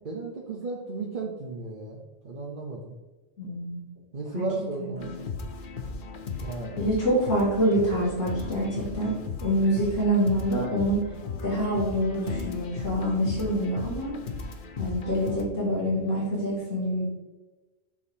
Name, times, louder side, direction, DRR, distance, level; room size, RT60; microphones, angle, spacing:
voice 1, 0.0-2.9 4.1-5.1 6.4-6.8, right 3 dB, 45° right, -2 dB, 1.1 m, -34 dB
voice 2, 3.4-3.8 4.3-4.4 4.8-5.1 6.8-9.1 9.4-11.0 11.4-14.2 14.8-17.0, equal, 90° left, -7 dB, 3.1 m, -26 dB
sound 1, 5.0-15.5, left 4 dB, 50° left, 0.8 m, -36 dB
8.5 x 6.4 x 2.8 m, 1.2 s
omnidirectional pair, 1.3 m